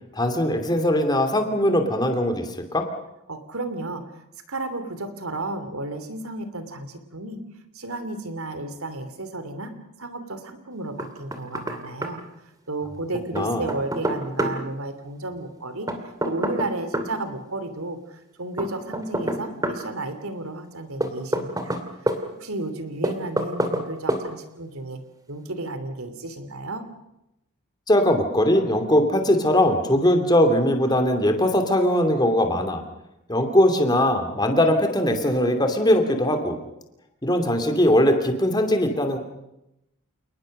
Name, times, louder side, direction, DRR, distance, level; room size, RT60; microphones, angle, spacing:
voice 1, 0.1-2.9 13.3-13.6 27.9-32.8 33.3-36.6 37.2-39.2, left 1 dB, 20° left, 6 dB, 2.7 m, -20 dB
voice 2, 3.3-4.1 4.5-7.4 7.7-9.7 10.0-12.2 12.7-15.9 16.2-21.8 22.4-25.0 25.3-26.8, right 2 dB, 75° right, 10 dB, 3.0 m, -33 dB
Knock, 11.0-11.8 12.0-12.1 13.3-14.6 15.9-17.1 18.6-19.8 21.0-22.2 23.0-23.8 24.1-24.2, right 1 dB, 15° right, 2.4 m, -26 dB
29.0 x 19.5 x 6.6 m, 0.87 s
head